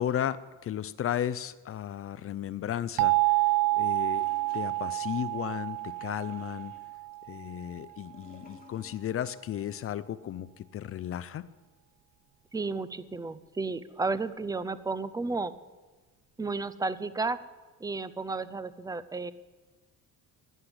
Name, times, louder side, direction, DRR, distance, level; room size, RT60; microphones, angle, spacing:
voice 1, 0.0-4.3 4.5-6.7 7.3-11.5, left 10 dB, 40° left, 16 dB, 0.5 m, -34 dB
sound 1, 3.0-7.7, right 21 dB, 80° right, 0.7 m, -28 dB
Gurgling / Toilet flush, 3.2-9.3 9.5-9.6, left 4 dB, 25° left, 3.1 m, -58 dB
voice 2, 12.5-15.5 16.4-17.4 17.8-19.3, right 3 dB, 10° right, 16 dB, 0.5 m, -32 dB
15.0 x 10.0 x 7.9 m, 1.3 s
cardioid pair, 160°, 34 cm